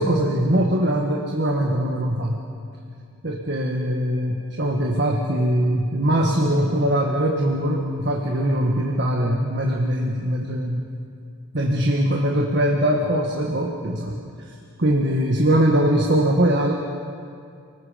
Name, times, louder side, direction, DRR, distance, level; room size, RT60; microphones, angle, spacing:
voice 1, 0.0-2.4 3.2-10.8 11.5-14.2 14.5-16.7, right 1 dB, 55° right, 0 dB, 1.7 m, -21 dB
29.5 x 20.0 x 5.2 m, 2.4 s
head